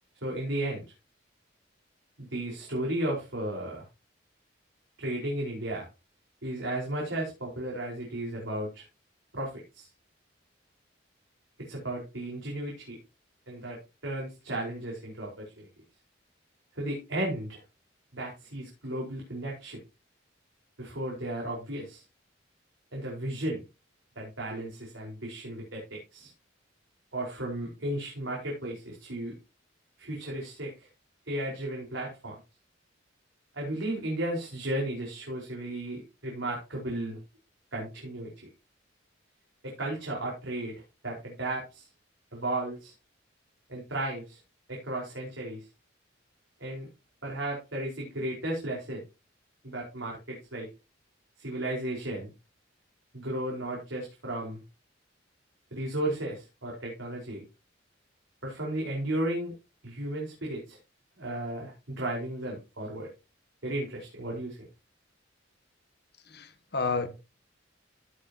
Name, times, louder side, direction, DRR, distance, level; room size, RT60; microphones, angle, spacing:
voice 1, 0.2-0.8 2.2-3.8 5.0-5.8 6.4-8.8 9.3-9.9 11.7-13.0 13.5-15.7 16.8-17.6 18.1-19.8 20.8-22.0 22.9-23.6 24.1-26.3 27.1-29.3 30.0-30.9 31.3-32.4 33.5-37.2 37.7-38.5 39.6-40.8 41.0-41.9 42.3-42.9 43.7-44.4 44.7-45.7 46.6-46.9 47.2-49.0 49.6-50.7 51.4-52.3 53.1-54.6 55.7-57.4 58.4-59.5 59.8-60.8 61.2-63.1 63.6-64.7, right 1 dB, 80° right, 4.8 m, -34 dB
voice 2, 66.3-67.1, left 4 dB, 55° left, 1.7 m, -30 dB
16.0 x 7.6 x 2.9 m
head